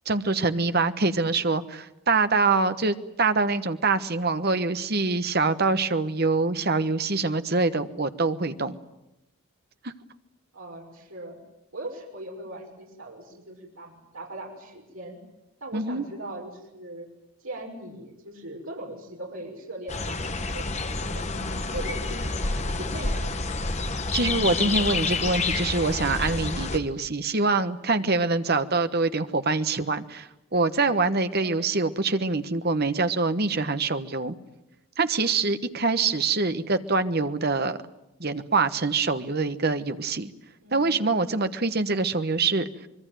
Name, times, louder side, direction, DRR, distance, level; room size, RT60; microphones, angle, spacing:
voice 1, 0.1-8.8 9.8-9.9 15.7-16.0 24.1-34.3 35.0-37.8 38.2-40.3 40.7-42.9, right 3 dB, 45° right, 10 dB, 1.2 m, -25 dB
voice 2, 10.5-11.4 11.7-15.2 15.6-17.1 17.4-20.7 21.0-23.6 31.3-31.7 40.6-41.0, right 1 dB, 70° right, -1 dB, 6.0 m, -40 dB
sound 1, 19.9-26.8, left 3 dB, 30° left, 1.3 m, -28 dB
25.0 x 22.5 x 9.2 m, 0.89 s
head